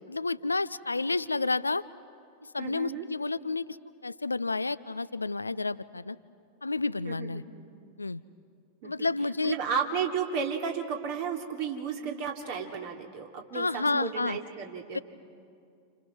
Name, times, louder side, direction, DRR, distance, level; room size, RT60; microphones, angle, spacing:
voice 1, 0.1-1.8 2.5-3.8 4.0-6.2 6.6-7.4 8.0-8.2 8.8-9.6 13.5-14.4 14.9-15.0, left 3 dB, 80° left, 16 dB, 0.5 m, -30 dB
voice 2, 2.6-3.0 7.1-7.5 8.8-9.1 9.4-15.0, right 6 dB, 50° right, 2 dB, 3.0 m, -33 dB
30.0 x 28.0 x 6.1 m, 2.4 s
figure-of-eight pair, 90°, 0 cm